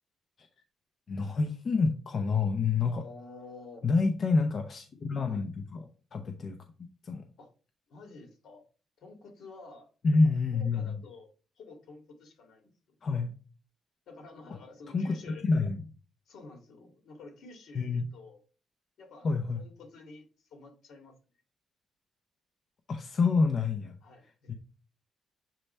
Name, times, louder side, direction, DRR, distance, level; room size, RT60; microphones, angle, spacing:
voice 1, 1.1-3.0 3.8-5.8 6.1-6.6 7.0-7.2 10.0-10.9 13.0-13.3 14.9-15.1 15.4-15.8 17.7-18.0 19.2-19.6 22.9-23.9 24.5-24.6, left 4 dB, 45° left, 5 dB, 0.7 m, -27 dB
voice 2, 2.8-3.9 5.3-5.5 7.4-7.5 7.9-8.6 9.0-9.9 10.5-11.3 11.6-13.0 14.1-15.5 16.3-18.4 19.0-19.3 19.6-21.1 24.0-24.5, left 3 dB, 70° left, 3 dB, 1.9 m, -50 dB
7.5 x 3.3 x 4.2 m, 0.37 s
cardioid pair, 135°, 0 cm